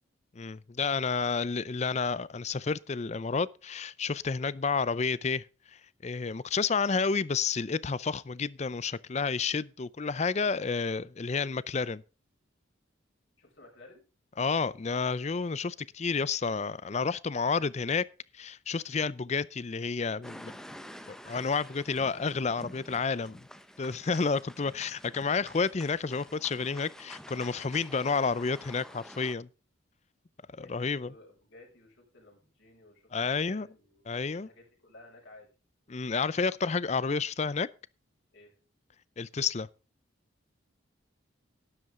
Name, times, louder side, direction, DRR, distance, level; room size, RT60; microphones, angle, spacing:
voice 1, 0.4-5.4 6.0-12.0 14.4-18.1 18.3-20.5 21.1-23.5 23.8-29.5 30.6-31.1 33.1-33.7 34.1-34.5 35.9-37.7 39.2-39.7, left 5 dB, 35° left, 0.4 m, -30 dB
voice 2, 13.4-14.0 27.8-28.0 30.6-33.1 33.4-35.5 38.3-38.6, left 2 dB, 60° left, 6.3 m, -55 dB
sound 1, 20.2-29.3, equal, 5° left, 0.8 m, -49 dB
12.0 x 11.0 x 3.7 m
head